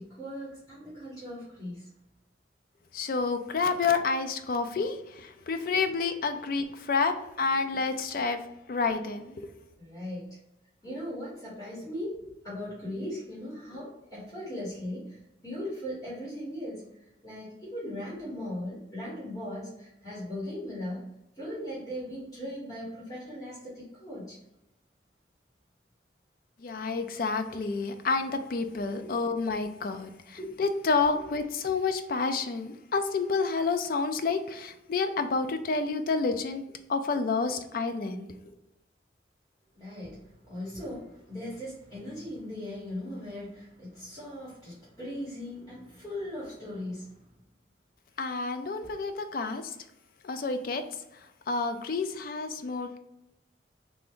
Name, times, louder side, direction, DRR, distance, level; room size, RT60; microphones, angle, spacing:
voice 1, 0.0-1.9 5.3-5.4 8.1-8.2 9.8-10.2 10.8-16.8 17.2-21.0 21.3-24.4 29.0-29.4 30.4-30.6 31.1-31.3 39.7-47.1 48.8-48.9, left 1 dB, 20° left, -8 dB, 1.4 m, -39 dB
voice 2, 2.9-8.4 8.7-9.5 26.6-36.6 36.9-38.3 48.2-49.7 50.2-50.8 51.5-53.0, left 4 dB, 50° left, 8 dB, 0.4 m, -29 dB
3.3 x 2.5 x 3.6 m, 0.90 s
head